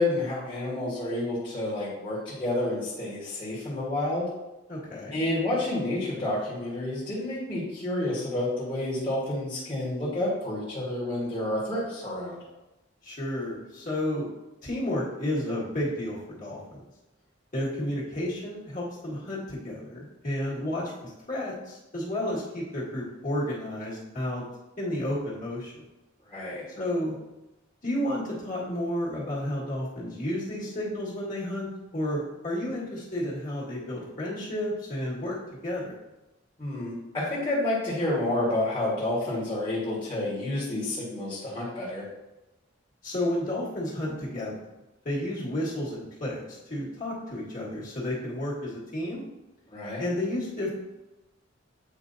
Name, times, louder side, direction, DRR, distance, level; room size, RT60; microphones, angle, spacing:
voice 1, 0.0-4.3 5.1-12.4 26.3-26.6 36.6-42.0 49.7-50.0, left 1 dB, 25° left, -9 dB, 1.5 m, -29 dB
voice 2, 4.7-5.2 13.0-14.3 14.6-16.8 17.5-24.4 24.8-25.8 26.8-27.1 27.8-35.4 35.6-35.9 43.0-44.5 45.0-46.4 46.7-49.2 50.0-50.7, left 1 dB, 45° left, -6 dB, 1.9 m, -31 dB
8.2 x 4.5 x 2.7 m, 0.99 s
head